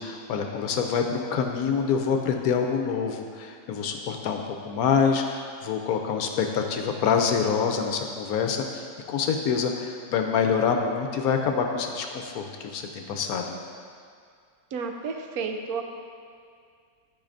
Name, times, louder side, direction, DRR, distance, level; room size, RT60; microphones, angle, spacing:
voice 1, 0.0-13.5, left 6 dB, 75° left, 4 dB, 1.0 m, -26 dB
voice 2, 14.7-15.8, right 5 dB, 75° right, 4 dB, 1.0 m, -31 dB
12.0 x 5.6 x 2.6 m, 2.2 s
omnidirectional pair, 1.7 m